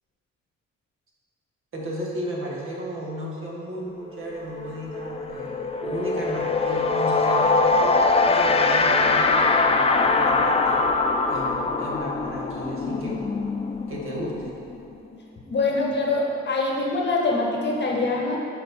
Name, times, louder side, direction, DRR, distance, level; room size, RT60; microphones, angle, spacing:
voice 1, 1.7-8.0 8.3-10.9 11.3-13.2 13.9-14.5, equal, 45° right, -3 dB, 1.4 m, -34 dB
sound 1, 4.1-4.3 4.6-15.2, left 3 dB, 20° left, 0.4 m, -22 dB
voice 2, 15.4-18.4, left 3 dB, 35° left, -2 dB, 1.2 m, -24 dB
7.6 x 4.7 x 3.6 m, 2.5 s
cardioid pair, 90°, 30 cm